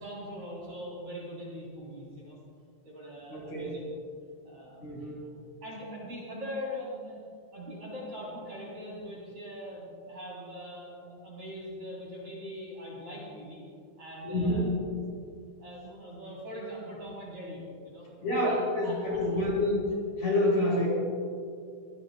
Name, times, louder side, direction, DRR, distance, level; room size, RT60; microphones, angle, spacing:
voice 1, 0.0-2.4 2.8-3.9 4.4-4.9 5.6-7.2 7.5-13.6 14.0-14.7 15.6-18.6 18.8-19.4, equal, 35° right, -6 dB, 4.4 m, -41 dB
voice 2, 3.3-3.7 4.8-5.2 14.2-14.7 18.2-18.5 18.7-19.8 20.2-20.9, left 1 dB, 35° left, -5 dB, 5.0 m, -27 dB
25.0 x 20.0 x 2.3 m, 2.3 s
omnidirectional pair, 5.9 m